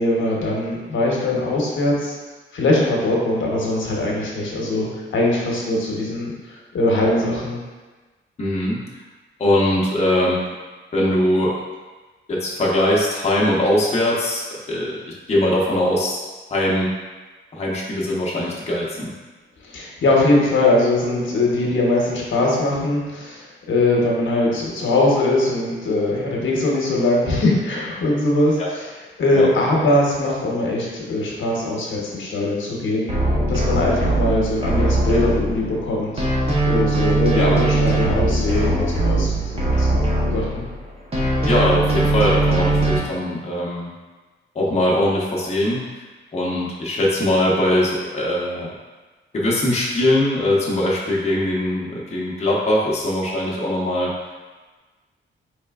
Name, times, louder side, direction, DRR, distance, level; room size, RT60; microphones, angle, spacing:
voice 1, 0.0-2.1 2.5-7.6 19.6-28.9 29.2-33.1 33.5-36.3 36.6-40.0 40.3-40.6, left 2 dB, 65° left, -3 dB, 0.9 m, -21 dB
voice 2, 8.4-8.8 9.4-10.4 10.9-11.5 12.3-15.0 15.3-16.2 16.5-16.9 17.5-19.1 28.6-28.7 29.3-29.5 37.3-37.6 41.5-43.9 44.5-46.0 46.3-48.7 49.3-54.1, left 1 dB, 30° left, -5 dB, 0.7 m, -21 dB
sound 1, 33.1-35.9 36.2-40.8 41.1-43.0, right 2 dB, 30° right, 0.8 m, -20 dB
4.2 x 3.2 x 2.3 m, 1.3 s
cardioid pair, 110°, 21 cm